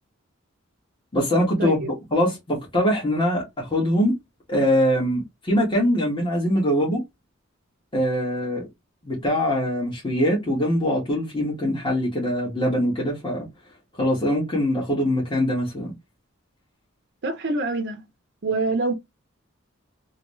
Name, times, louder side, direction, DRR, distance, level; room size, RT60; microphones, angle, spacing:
voice 1, 1.1-1.8 2.1-4.1 4.5-7.0 7.9-8.6 9.0-13.5 14.0-15.9, equal, 25° left, 1.4 m, -23 dB
voice 2, 17.2-18.0 18.4-18.9, right 3 dB, 60° right, 0.6 m, -25 dB
3.1 x 2.7 x 3.1 m
head